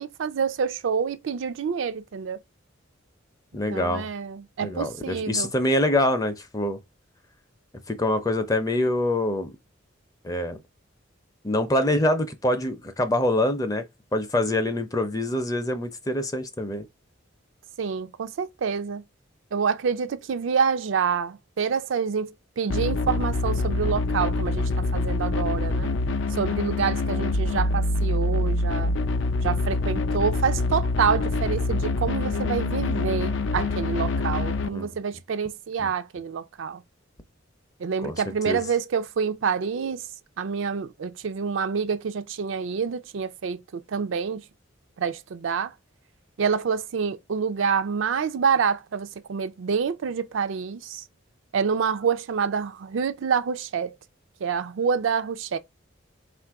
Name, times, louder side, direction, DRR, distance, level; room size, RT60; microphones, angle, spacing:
voice 1, 0.0-2.4 3.7-5.5 17.8-19.0 19.5-25.9 26.4-28.9 29.4-36.8 37.8-40.0 40.4-44.4 45.0-45.7 46.4-51.0 51.5-53.9 54.4-55.6, right 6 dB, 70° right, 0.4 m, -27 dB
voice 2, 3.5-4.1 4.6-6.8 7.9-9.5 10.2-10.6 11.4-13.8 14.1-16.9 34.7-34.9 35.8-35.9 38.0-38.2 38.5-38.6, left 1 dB, 20° left, 0.5 m, -25 dB
sound 1, 22.7-34.7, left 2 dB, 65° left, 0.5 m, -25 dB
4.0 x 2.5 x 4.5 m
head